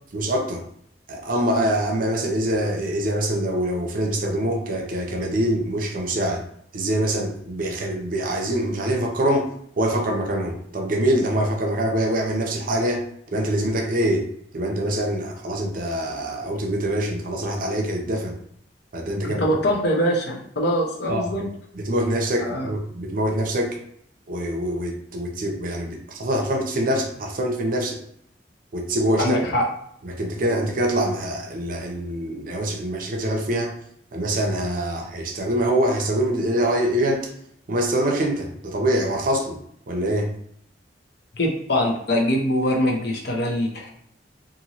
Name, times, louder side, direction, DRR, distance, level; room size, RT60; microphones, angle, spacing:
voice 1, 0.1-0.6 1.1-6.4 6.7-13.0 13.3-14.3 14.5-18.4 18.9-19.4 21.1-21.4 21.8-23.8 24.3-28.0 28.7-29.4 30.0-33.8 34.1-37.3 37.7-39.6 39.9-40.3, right 1 dB, 50° right, 2 dB, 0.5 m, -24 dB
voice 2, 19.2-21.5 22.4-22.7 29.2-29.6 41.4-43.9, equal, 60° left, 0 dB, 0.7 m, -23 dB
2.7 x 2.6 x 2.9 m, 0.70 s
head